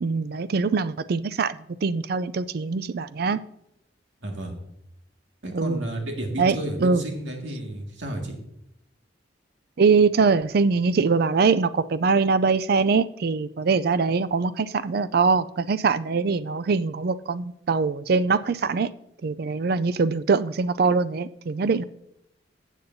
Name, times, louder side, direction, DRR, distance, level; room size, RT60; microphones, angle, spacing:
voice 1, 0.0-3.4 5.5-5.8 6.4-6.6 6.8-7.0 9.8-18.9 19.2-21.8, right 4 dB, 55° right, 16 dB, 0.4 m, -23 dB
voice 2, 4.2-4.5 5.4-8.4, right 1 dB, 85° right, 2 dB, 2.1 m, -32 dB
14.5 x 8.3 x 2.7 m, 0.80 s
head